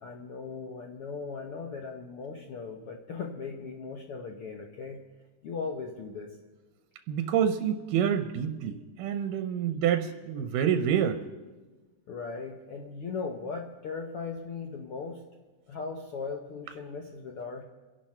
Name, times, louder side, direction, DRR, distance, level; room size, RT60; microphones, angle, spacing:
voice 1, 0.0-5.0 5.4-6.4 12.1-15.2 15.7-17.6, left 4 dB, 75° left, 2 dB, 1.2 m, -38 dB
voice 2, 7.1-11.2, right 8 dB, 75° right, 8 dB, 2.2 m, -27 dB
28.5 x 11.5 x 4.4 m, 1.3 s
omnidirectional pair, 4.1 m